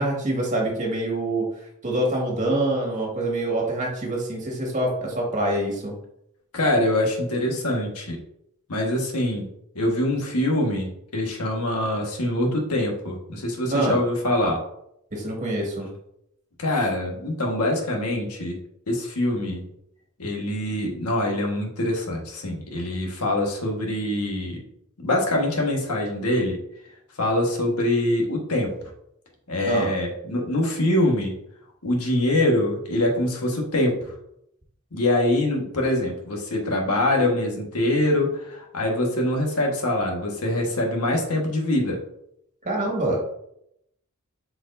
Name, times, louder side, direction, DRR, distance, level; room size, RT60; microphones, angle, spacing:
voice 1, 0.0-1.5 1.8-5.9 13.7-14.0 15.1-15.9 29.7-29.9 42.6-43.2, right 1 dB, 35° right, -2 dB, 1.9 m, -25 dB
voice 2, 6.5-8.2 8.7-9.5 9.7-14.6 16.6-18.6 18.9-19.6 20.2-24.6 25.0-26.6 27.2-28.7 29.5-31.3 31.8-34.1 34.9-42.0, left 1 dB, 90° left, 1 dB, 1.5 m, -24 dB
8.0 x 4.8 x 2.6 m, 0.76 s
head